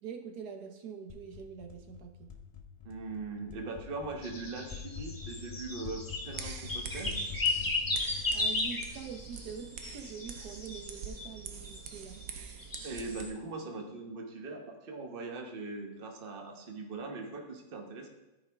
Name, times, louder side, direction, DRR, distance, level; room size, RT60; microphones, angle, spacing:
voice 1, 0.0-2.3 8.3-12.2, right 7 dB, 85° right, 4 dB, 1.5 m, -44 dB
sound 1, 1.1-9.8, left 7 dB, 40° left, 0.5 m, -46 dB
voice 2, 2.8-7.1 12.8-18.1, right 3 dB, 40° right, 3 dB, 1.1 m, -41 dB
sound 2, 4.2-12.2 12.6-13.3, left 2 dB, 15° left, 1.0 m, -35 dB
sound 3, 6.2-13.3, right 7 dB, 70° right, 1.1 m, -45 dB
13.5 x 4.9 x 3.5 m, 1.1 s
omnidirectional pair, 1.6 m